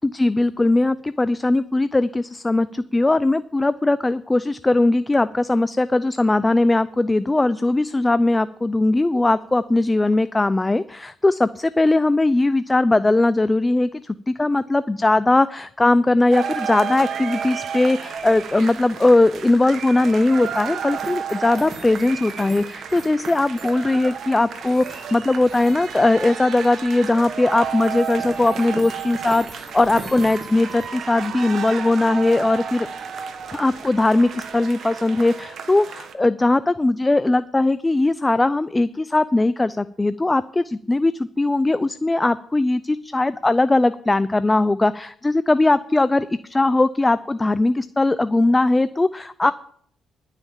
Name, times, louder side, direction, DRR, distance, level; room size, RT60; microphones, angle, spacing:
voice 1, 0.0-32.9 33.5-49.5, left 2 dB, 15° left, 15 dB, 0.4 m, -19 dB
sound 1, 16.3-36.1, right 7 dB, 60° right, 1.3 m, -32 dB
sound 2, 18.2-34.6, right 2 dB, 25° right, 2.1 m, -44 dB
11.0 x 5.7 x 8.8 m, 0.62 s
cardioid pair, 90°, 0 cm